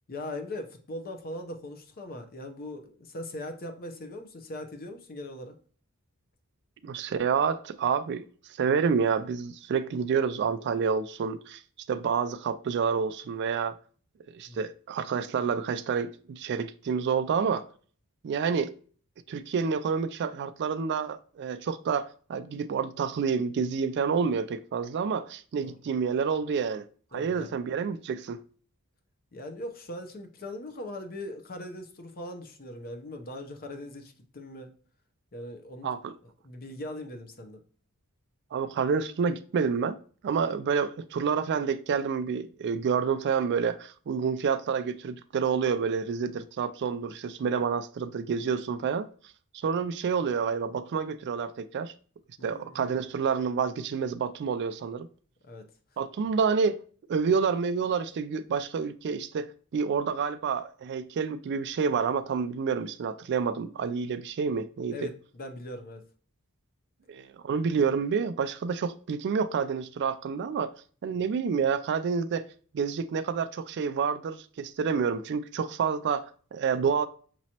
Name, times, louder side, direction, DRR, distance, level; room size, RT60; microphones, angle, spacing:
voice 1, 0.1-5.6 14.5-14.7 25.6-25.8 27.1-27.5 29.3-34.7 35.3-35.9 36.4-37.6 52.4-52.9 55.5-55.7 64.9-66.0, left 1 dB, 40° left, 0.7 m, -40 dB
voice 2, 6.8-8.2 8.6-11.6 11.9-13.7 14.3-17.7 18.2-18.7 19.3-26.8 27.1-28.4 35.8-36.1 38.5-40.0 40.2-49.1 49.5-51.9 52.4-55.1 56.0-56.8 57.1-59.5 59.7-65.1 67.1-70.7 71.0-72.5 72.7-77.1, right 6 dB, 50° right, 0.3 m, -28 dB
6.1 x 3.0 x 2.8 m
head